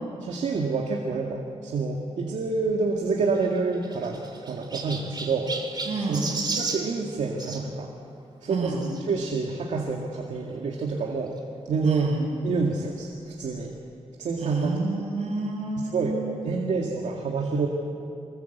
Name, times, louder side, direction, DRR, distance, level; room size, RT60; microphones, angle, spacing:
voice 1, 0.2-5.5 6.0-6.2 6.5-7.9 8.4-11.4 11.7-12.1 12.4-13.1 13.4-13.7 14.2-14.7 15.9-17.7, right 4 dB, 80° right, 0 dB, 2.1 m, -28 dB
Chirp tweet, 3.3-7.6 8.8-9.0 9.7-9.8 10.0-10.1 11.4-11.5, right 3 dB, 40° right, 2.9 m, -34 dB
voice 2, 5.9-6.3 8.5-8.8 11.8-12.2 14.4-16.5, right 3 dB, 65° right, -2 dB, 8.0 m, -29 dB
24.5 x 20.5 x 8.2 m, 2.5 s
wide cardioid pair, 115°, 12 cm